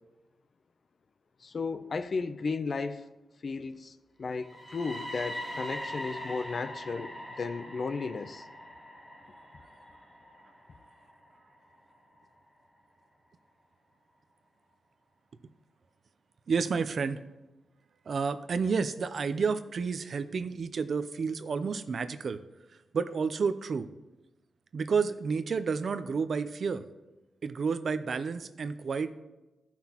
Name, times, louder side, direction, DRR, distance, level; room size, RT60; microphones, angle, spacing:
voice 1, 1.4-3.0 3.4-8.5, left 4 dB, 45° left, 0.5 m, -34 dB
sound 1, 4.3-12.2, equal, 10° left, 1.1 m, -42 dB
voice 2, 16.5-17.2 18.1-22.4 22.9-23.9 24.7-26.8 27.4-29.1, right 5 dB, 55° right, 0.5 m, -30 dB
14.5 x 5.8 x 2.9 m
cardioid pair, 105°, 0 cm